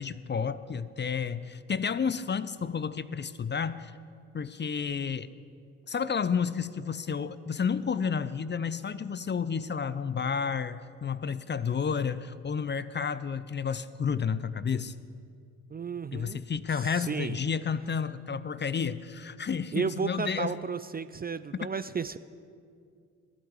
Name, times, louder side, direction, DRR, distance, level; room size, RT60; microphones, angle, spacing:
voice 1, 0.0-3.9 4.3-5.3 5.9-14.9 16.1-20.5, left 6 dB, 30° left, 15 dB, 0.6 m, -31 dB
voice 2, 15.7-16.4 16.7-17.4 19.7-22.2, right 5 dB, 25° right, 14 dB, 0.5 m, -33 dB
15.0 x 9.3 x 7.3 m, 2.3 s
hypercardioid pair, 45°, 39 cm